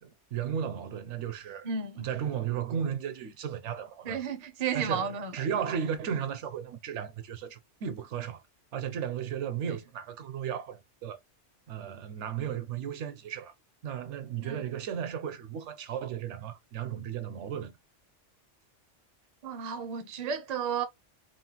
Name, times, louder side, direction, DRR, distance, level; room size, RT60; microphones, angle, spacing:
voice 1, 0.0-1.7 2.0-4.2 4.7-8.4 8.7-11.2 11.7-13.5 13.8-17.7, right 8 dB, 70° right, 0.9 m, -35 dB
voice 2, 1.6-2.1 4.1-5.3 14.4-14.6 19.4-20.8, right 6 dB, 45° right, 0.5 m, -33 dB
3.0 x 2.2 x 2.7 m
omnidirectional pair, 1.3 m